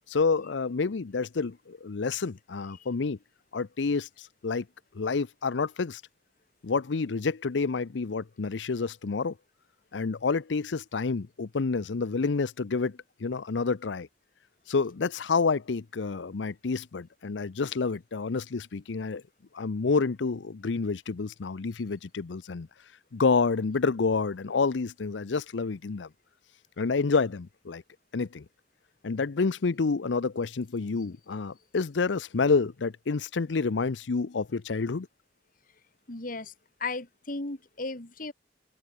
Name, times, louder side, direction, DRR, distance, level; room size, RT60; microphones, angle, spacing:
voice 1, 0.1-3.2 3.5-4.6 4.9-6.0 6.6-9.3 9.9-14.1 14.7-19.2 19.5-22.7 23.1-26.1 26.8-27.8 28.1-28.4 29.0-35.1, left 4 dB, 90° left, 0.6 m, -28 dB
voice 2, 36.1-36.5 36.8-38.3, left 3 dB, 50° left, 2.4 m, -35 dB
open air
head